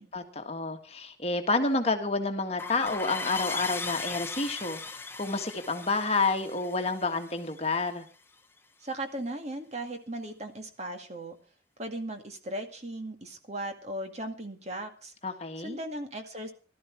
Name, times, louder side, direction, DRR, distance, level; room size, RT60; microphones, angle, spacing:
voice 1, 0.1-8.0 15.2-15.8, left 3 dB, 35° left, 1.7 m, -29 dB
sound 1, 2.6-7.9, left 4 dB, 10° left, 1.1 m, -38 dB
voice 2, 8.8-11.4 11.8-15.1 15.6-16.5, right 1 dB, 35° right, 2.1 m, -37 dB
17.5 x 12.5 x 4.6 m
head